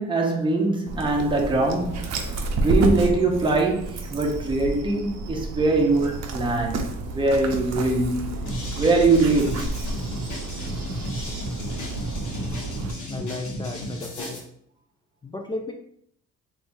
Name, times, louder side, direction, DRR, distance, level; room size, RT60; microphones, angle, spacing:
voice 1, 0.0-8.4 8.8-9.7, right 3 dB, 15° right, 0.7 m, -22 dB
Dog, 0.9-12.9, right 2 dB, 60° right, 0.6 m, -30 dB
sound 1, 8.5-14.4, left 1 dB, 85° left, 1.3 m, -34 dB
voice 2, 13.1-14.4 15.2-15.7, left 2 dB, 15° left, 0.3 m, -33 dB
3.3 x 3.0 x 2.6 m
cardioid pair, 90°, 30 cm